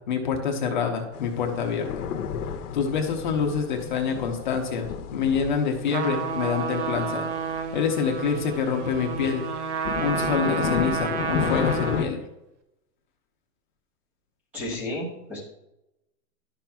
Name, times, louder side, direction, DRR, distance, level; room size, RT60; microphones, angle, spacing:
voice 1, 0.0-2.1 2.7-9.5 10.0-12.2 14.7-14.9, left 6 dB, 30° left, 3 dB, 0.7 m, -27 dB
sound 1, 1.1-12.0, left 8 dB, 75° left, 0.9 m, -33 dB
Trumpet, 5.9-12.2, right 6 dB, 50° right, 0.8 m, -30 dB
voice 2, 14.5-15.4, left 1 dB, 5° right, -4 dB, 0.7 m, -32 dB
11.5 x 5.8 x 2.3 m, 0.91 s
supercardioid pair, 175°, 46 cm